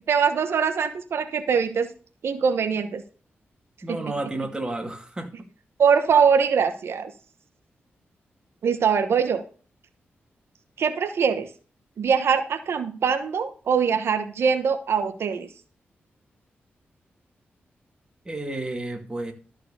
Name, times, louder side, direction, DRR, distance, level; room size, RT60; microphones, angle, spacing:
voice 1, 0.1-1.9 2.2-3.0 3.9-4.0 5.8-7.1 8.6-9.4 10.8-11.5 12.0-15.5, right 6 dB, 75° right, 1.0 m, -22 dB
voice 2, 3.8-5.3 18.2-19.3, right 2 dB, 20° right, 2.4 m, -31 dB
13.0 x 4.7 x 6.7 m
wide cardioid pair, 95°, 4 cm